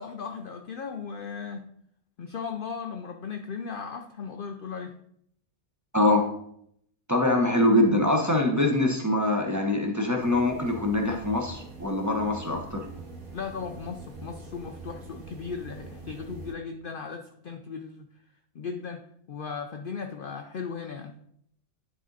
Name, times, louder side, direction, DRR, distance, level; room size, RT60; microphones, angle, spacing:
voice 1, 0.0-1.6 2.2-4.9 13.3-18.1 18.5-19.0 19.3-21.2, left 5 dB, 75° left, 5 dB, 0.5 m, -37 dB
voice 2, 5.9-6.3 7.1-12.8, left 1 dB, 15° right, 0 dB, 0.7 m, -24 dB
sound 1, 10.2-16.5, right 3 dB, 75° right, 1.9 m, -44 dB
9.8 x 3.8 x 4.0 m, 0.70 s
omnidirectional pair, 1.5 m